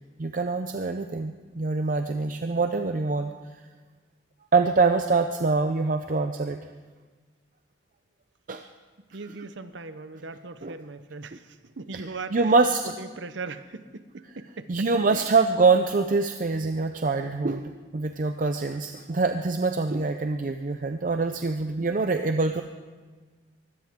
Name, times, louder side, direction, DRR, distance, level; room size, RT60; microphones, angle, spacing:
voice 1, 0.2-3.3 4.5-6.6 8.5-8.7 10.6-10.8 11.9-12.0 12.3-12.9 14.7-17.6 17.9-22.6, right 3 dB, 40° right, 6 dB, 0.5 m, -24 dB
voice 2, 9.1-12.4 12.8-15.3, right 3 dB, 70° right, 11 dB, 0.8 m, -39 dB
22.5 x 17.0 x 3.6 m, 1.4 s
head